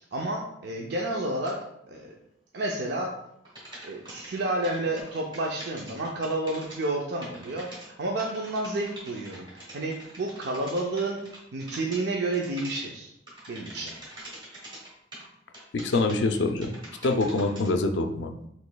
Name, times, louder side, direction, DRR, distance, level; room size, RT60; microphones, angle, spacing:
voice 1, 0.0-1.6 1.9-2.1 2.5-3.1 3.8-13.1 13.5-14.4, right 2 dB, 65° right, 0 dB, 0.5 m, -31 dB
sound 1, 1.5-1.6 3.4-6.9 7.2-7.9 8.2-12.0 12.3-12.8 13.3-15.2 15.5-17.7, right 1 dB, 25° right, 1.6 m, -44 dB
voice 2, 15.7-16.7 17.0-18.5, left 2 dB, 70° left, 6 dB, 0.4 m, -25 dB
6.0 x 3.1 x 2.2 m, 0.77 s
head